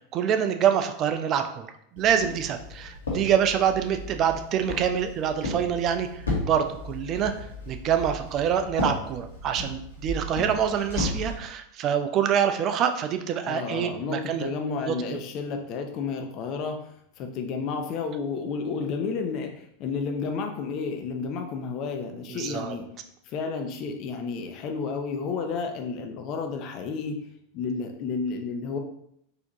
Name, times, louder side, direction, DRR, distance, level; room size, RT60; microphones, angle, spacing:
voice 1, 0.1-1.7 1.9-7.3 7.7-14.5 14.9-15.0 22.3-22.8, right 8 dB, 40° right, 7 dB, 0.4 m, -26 dB
Walk footsteps, 2.0-11.3, left 2 dB, 80° left, 1.2 m, -34 dB
voice 2, 13.4-16.8 17.2-19.5 19.8-22.9 23.3-27.3 27.5-28.8, left 5 dB, 45° left, 4 dB, 0.6 m, -31 dB
4.1 x 2.8 x 2.9 m, 0.73 s
figure-of-eight pair, 90°, 0 cm